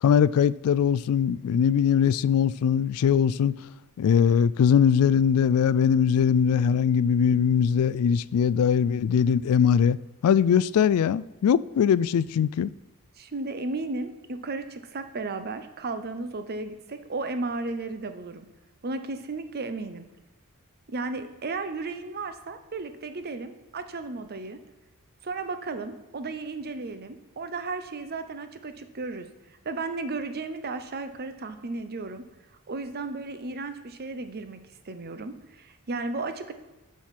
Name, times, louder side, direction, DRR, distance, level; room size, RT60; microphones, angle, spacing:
voice 1, 0.0-3.6 4.0-10.0 10.2-12.7, left 7 dB, 75° left, 0.3 m, -21 dB
voice 2, 13.2-18.5 18.8-20.1 20.9-24.6 25.2-29.3 29.6-32.2 32.7-34.6 34.9-36.5, right 3 dB, 45° right, 0.7 m, -34 dB
7.3 x 6.4 x 5.8 m
head